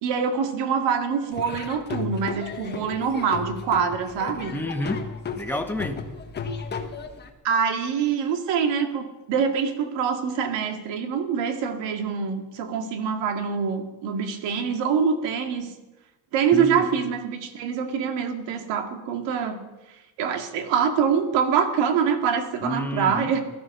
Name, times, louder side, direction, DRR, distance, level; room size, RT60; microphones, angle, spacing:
voice 1, 0.0-4.5 7.4-15.7 16.3-19.6 20.2-23.4, right 6 dB, 80° right, 6 dB, 2.2 m, -25 dB
Laughter / Drum, 1.3-7.3, left 5 dB, 25° left, 1.3 m, -34 dB
voice 2, 4.5-5.0 5.3-6.0 16.5-16.9 22.6-23.3, left 1 dB, 5° left, 6 dB, 1.0 m, -29 dB
16.5 x 13.0 x 6.6 m, 1.1 s
cardioid pair, 165°, 43 cm